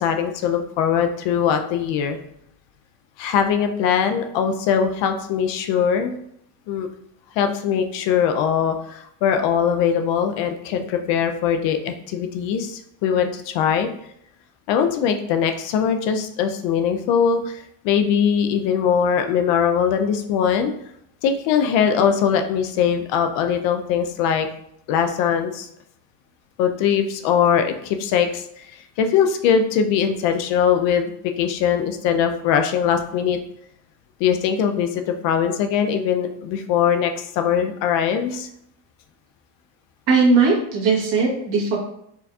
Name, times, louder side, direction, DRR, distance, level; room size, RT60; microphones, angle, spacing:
voice 1, 0.0-2.2 3.2-6.1 6.7-6.9 7.4-13.9 14.7-20.7 21.2-24.5 24.9-25.7 26.6-31.1 31.4-33.4 34.2-38.5, left 7 dB, 60° left, 6 dB, 0.5 m, -21 dB
voice 2, 40.1-41.8, right 4 dB, 55° right, -3 dB, 1.4 m, -18 dB
4.5 x 2.6 x 2.3 m, 0.72 s
cardioid pair, 130°, 50 cm